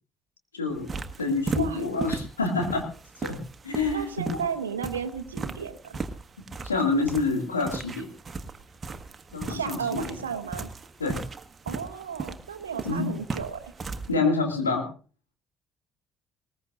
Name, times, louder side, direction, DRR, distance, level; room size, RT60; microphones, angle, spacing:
voice 1, 0.5-0.9 1.2-2.9 3.2-4.4 6.6-8.1 9.3-10.1 11.0-11.2 12.8-13.1 14.1-14.9, left 3 dB, 85° left, 2 dB, 2.3 m, -27 dB
sound 1, 0.7-14.1, right 4 dB, 30° right, 1.4 m, -37 dB
voice 2, 3.9-6.0 9.5-10.7 11.7-13.7, right 7 dB, 80° right, 8 dB, 0.9 m, -34 dB
20.0 x 19.5 x 2.6 m, 0.37 s
figure-of-eight pair, 50°, 0 cm